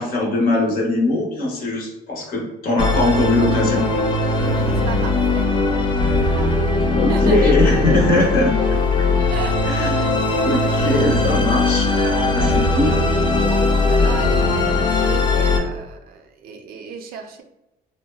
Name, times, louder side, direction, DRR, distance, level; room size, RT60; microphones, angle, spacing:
voice 1, 0.0-3.8 6.9-8.5 9.7-9.9 10.4-11.9 12.3-13.0, left 2 dB, 60° left, -1 dB, 0.8 m, -20 dB
Musical instrument, 2.8-15.6, left 2 dB, 25° left, 0.4 m, -19 dB
voice 2, 4.4-5.6 6.2-6.5 7.1-7.5 9.3-10.1 11.9-13.0 13.4-17.4, right 6 dB, 65° right, 4 dB, 0.4 m, -33 dB
2.7 x 2.1 x 2.2 m, 0.94 s
cardioid pair, 110°, 17 cm